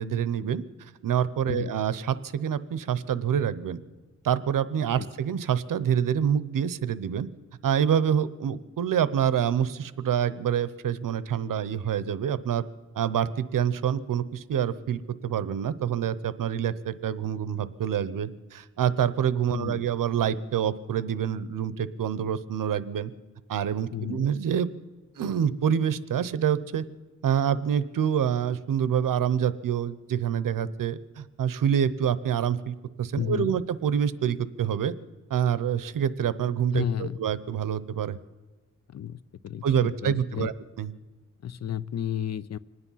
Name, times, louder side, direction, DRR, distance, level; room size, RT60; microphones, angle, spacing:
voice 1, 0.0-3.8 4.2-7.3 7.6-12.6 12.9-23.1 23.5-24.7 25.2-26.8 27.2-34.9 35.3-38.2 39.6-40.5 40.8-40.9, right 8 dB, 85° right, 15 dB, 0.8 m, -26 dB
voice 2, 19.5-19.8 23.9-24.2 33.2-33.5 36.7-37.2 38.9-40.5 41.4-42.6, left 9 dB, 55° left, 18 dB, 0.5 m, -32 dB
26.0 x 9.8 x 5.6 m, 1.3 s
wide cardioid pair, 120°, 32 cm